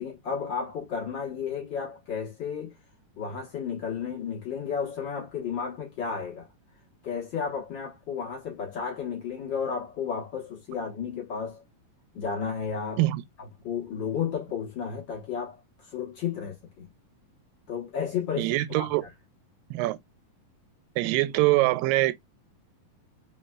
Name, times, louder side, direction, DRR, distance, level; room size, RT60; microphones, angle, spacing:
voice 1, 0.0-2.7 3.2-6.5 7.0-11.6 12.1-13.0 13.6-16.9 17.7-18.9, left 6 dB, 75° left, 1.0 m, -33 dB
voice 2, 18.4-19.1 19.7-20.0 21.0-22.1, right 18 dB, 85° right, 2.2 m, -24 dB
5.1 x 3.2 x 2.3 m
omnidirectional pair, 4.0 m